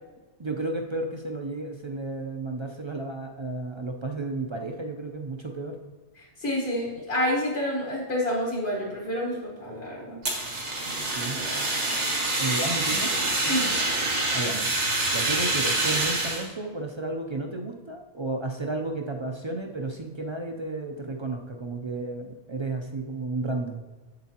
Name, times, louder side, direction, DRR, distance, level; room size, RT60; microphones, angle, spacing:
voice 1, 0.4-5.8 10.9-11.5 12.4-13.1 13.4-13.9 14.3-14.7 15.1-23.8, right 2 dB, 40° right, 3 dB, 0.4 m, -33 dB
voice 2, 6.4-10.2 13.5-13.8, left 1 dB, 65° left, -5 dB, 1.8 m, -28 dB
Fire, 10.2-16.5, right 2 dB, 85° right, 1.8 m, -26 dB
7.7 x 7.3 x 2.9 m, 1.3 s
omnidirectional pair, 1.2 m